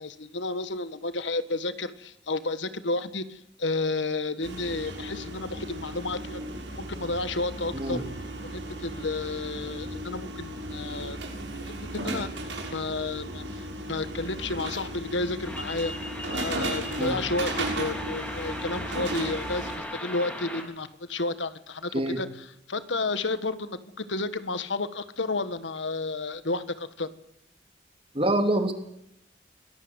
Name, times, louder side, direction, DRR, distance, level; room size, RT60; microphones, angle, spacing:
voice 1, 0.0-6.4 6.8-8.0 8.4-11.2 11.6-12.3 12.7-13.6 13.9-22.3 22.7-27.1, left 3 dB, 90° left, 12 dB, 1.6 m, -31 dB
sound 1, 4.4-19.8, right 1 dB, 90° right, 6.3 m, -35 dB
sound 2, 15.4-20.6, equal, 10° left, 4.0 m, -37 dB
voice 2, 28.1-28.7, right 1 dB, 30° right, 6 dB, 3.0 m, -25 dB
23.0 x 18.0 x 8.2 m, 0.79 s
head